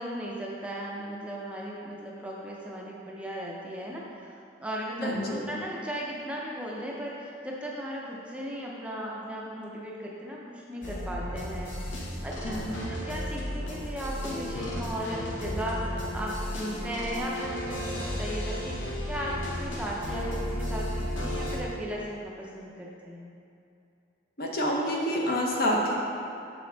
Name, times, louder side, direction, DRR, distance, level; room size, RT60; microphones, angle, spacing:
voice 1, 0.0-23.3, equal, 5° right, -4 dB, 0.6 m, -36 dB
voice 2, 5.0-5.4 12.4-12.9 24.4-25.9, equal, 55° left, -1 dB, 0.9 m, -28 dB
sound 1, 10.8-21.6, left 1 dB, 85° left, 1.1 m, -34 dB
6.8 x 5.2 x 3.9 m, 2.6 s
head